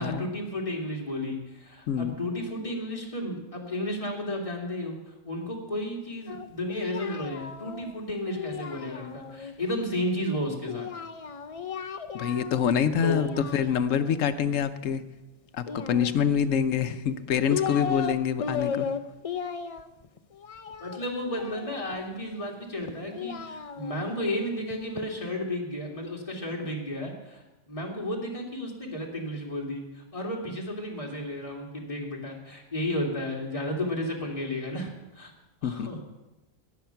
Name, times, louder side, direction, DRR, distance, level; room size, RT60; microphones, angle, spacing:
voice 1, 0.0-10.9 13.0-13.3 20.8-35.3 35.6-36.0, left 1 dB, 25° left, -1 dB, 2.3 m, -33 dB
voice 2, 1.9-2.2 12.1-15.0 15.5-18.9 35.6-35.9, left 8 dB, 70° left, 11 dB, 1.1 m, -26 dB
Singing, 6.3-9.5 10.7-12.7 13.0-14.2 15.6-16.6 17.2-18.1 18.4-22.1 22.8-25.1, left 7 dB, 50° left, 0.4 m, -36 dB
18.0 x 7.2 x 5.8 m, 1.0 s
omnidirectional pair, 1.4 m